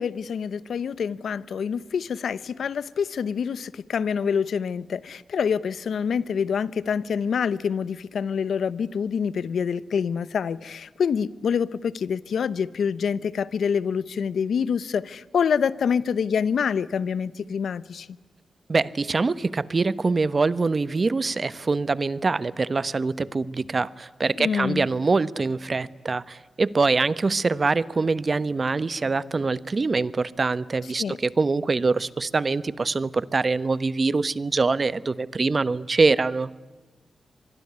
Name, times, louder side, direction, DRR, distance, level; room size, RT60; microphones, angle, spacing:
voice 1, 0.0-18.1 24.4-24.9 31.0-31.2, left 6 dB, 85° left, 0.9 m, -26 dB
voice 2, 18.7-36.5, right 3 dB, 50° right, 1.1 m, -24 dB
25.5 x 21.0 x 9.5 m
cardioid pair, 50°, 0 cm